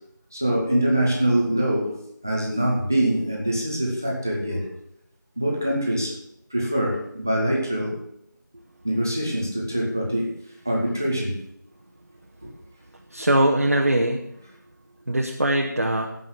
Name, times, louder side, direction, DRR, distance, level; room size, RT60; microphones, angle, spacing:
voice 1, 0.3-4.7 5.4-6.2 6.5-8.0 8.8-10.3 10.6-11.4 12.4-12.5, right 1 dB, 10° right, -3 dB, 0.8 m, -24 dB
voice 2, 13.1-14.2 15.1-16.1, right 1 dB, 45° right, 0 dB, 1.1 m, -21 dB
15.5 x 5.5 x 6.0 m, 0.73 s
figure-of-eight pair, 175°, 11 cm